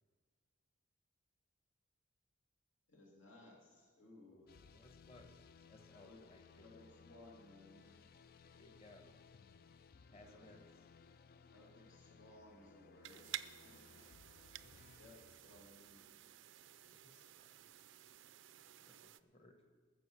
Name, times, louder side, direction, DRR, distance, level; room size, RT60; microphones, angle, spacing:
voice 1, 2.9-4.5 6.0-6.2 6.6-8.0 10.2-10.6 11.5-14.0 15.0-16.0, left 2 dB, 80° left, -3 dB, 2.8 m, -61 dB
voice 2, 4.3-6.9 8.5-9.1 10.1-10.6 16.9-17.5 18.8-19.6, left 2 dB, 30° left, 4 dB, 1.3 m, -63 dB
sound 1, 4.5-16.4, left 5 dB, 45° left, 0.4 m, -63 dB
sound 2, 13.0-19.2, right 12 dB, 70° right, 0.5 m, -53 dB
20.0 x 7.2 x 6.2 m, 1.5 s
head